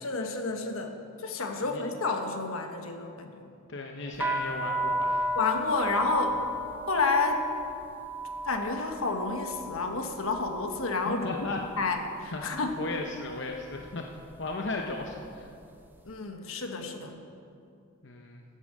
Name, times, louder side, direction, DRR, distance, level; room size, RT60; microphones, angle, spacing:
voice 1, 0.0-3.5 5.3-6.4 6.9-7.5 8.4-11.4 11.8-12.8 16.0-17.2, left 3 dB, 80° left, 4 dB, 1.3 m, -30 dB
voice 2, 3.7-5.3 11.0-11.6 12.3-14.1 14.4-15.5 18.0-18.4, left 2 dB, 55° left, 2 dB, 0.8 m, -36 dB
sound 1, 4.1-12.1 12.3-13.0 13.6-13.9 14.2-15.6, right 1 dB, 10° right, 0.6 m, -34 dB
13.5 x 8.6 x 6.5 m, 2.5 s
head